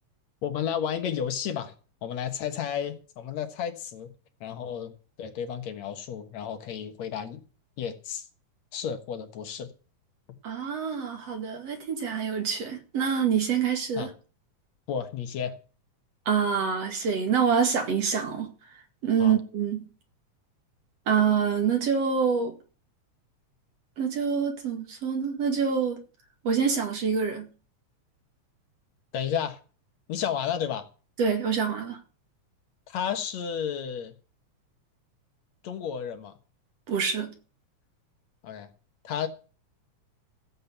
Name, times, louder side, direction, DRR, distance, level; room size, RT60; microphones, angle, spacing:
voice 1, 0.4-1.7 2.0-4.1 4.4-4.9 5.2-7.4 7.8-8.3 8.7-9.7 14.0-14.1 14.9-15.6 19.2-19.3 29.1-29.6 30.1-30.9 32.9-34.1 35.6-36.3 38.4-38.7 39.0-39.3, left 8 dB, 65° left, 2.6 m, -32 dB
voice 2, 10.4-14.1 16.3-18.5 19.0-19.9 21.1-22.5 24.0-26.0 26.4-27.5 31.2-32.0 36.9-37.3, right 6 dB, 55° right, 3.1 m, -26 dB
15.5 x 7.7 x 7.0 m
omnidirectional pair, 3.4 m